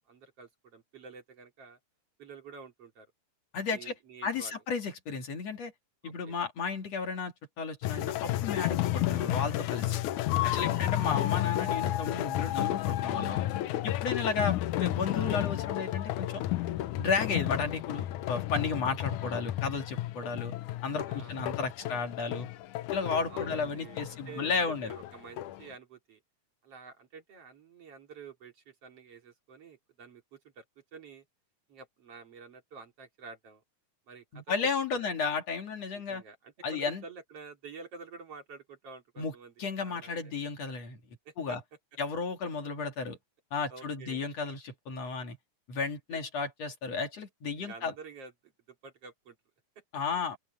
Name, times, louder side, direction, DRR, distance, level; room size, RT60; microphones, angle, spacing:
voice 1, 0.0-1.8 2.2-3.1 3.7-4.6 6.0-6.4 10.6-11.2 14.1-14.3 21.1-22.0 23.3-26.2 26.6-30.6 30.9-31.2 31.7-33.6 34.1-34.6 34.9-35.1 35.9-39.5 39.8-40.3 41.3-41.6 43.7-44.2 46.1-46.2 47.6-49.4 49.8-49.9, right 5 dB, 50° right, 3.6 m, -49 dB
voice 2, 3.5-3.9 4.2-5.7 6.0-9.9 10.4-13.4 13.8-16.4 17.0-20.5 20.8-22.5 22.9-24.9 34.3-36.2 36.6-37.0 39.2-39.3 39.6-41.0 41.4-41.6 42.0-43.2 43.5-45.4 45.7-47.9 49.9-50.4, left 5 dB, 55° left, 3.4 m, -33 dB
sound 1, 7.8-25.7, left 14 dB, 75° left, 2.2 m, -32 dB
open air
omnidirectional pair, 3.6 m